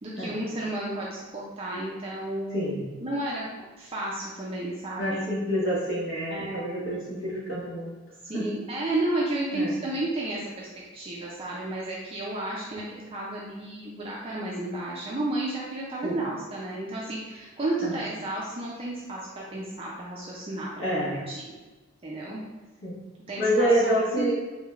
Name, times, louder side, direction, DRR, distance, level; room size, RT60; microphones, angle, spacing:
voice 1, 0.0-3.5 3.8-5.3 6.3-6.9 8.2-10.7 10.9-21.4 22.0-22.4 23.3-23.7 24.2-24.3, right 2 dB, 25° right, -5 dB, 0.4 m, -32 dB
voice 2, 2.5-2.8 5.0-7.9 8.3-8.5 9.5-9.8 16.0-16.2 17.8-18.0 20.8-21.2 22.8-23.0 23.4-24.3, equal, 75° left, -6 dB, 1.2 m, -27 dB
3.8 x 3.2 x 2.4 m, 1.2 s
head